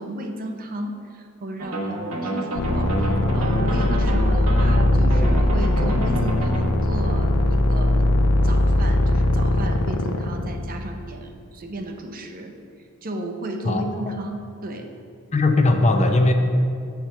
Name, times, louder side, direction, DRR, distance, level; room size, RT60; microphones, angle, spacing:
voice 1, 0.0-8.2 8.4-14.9, right 1 dB, 40° right, 4 dB, 0.7 m, -34 dB
sound 1, 1.6-6.6, right 2 dB, 70° right, 1.2 m, -29 dB
sound 2, 2.5-11.0, left 1 dB, 85° left, 0.6 m, -20 dB
voice 2, 13.6-14.1 15.3-16.3, left 2 dB, 30° left, 5 dB, 0.6 m, -19 dB
7.6 x 4.6 x 6.8 m, 2.4 s
head